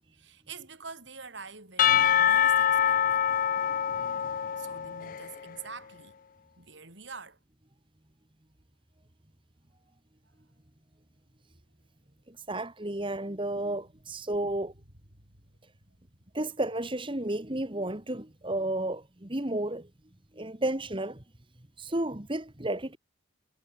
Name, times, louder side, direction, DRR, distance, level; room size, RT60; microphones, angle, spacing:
voice 1, 0.1-3.3 4.6-6.2 6.6-7.4 15.1-15.2, right 5 dB, 60° right, 5.9 m, -46 dB
Percussion / Church bell, 1.8-5.4, left 9 dB, 40° left, 0.3 m, -25 dB
voice 2, 12.3-14.7 16.3-19.9 20.3-21.2 21.8-23.0, right 1 dB, 25° right, 1.7 m, -32 dB
head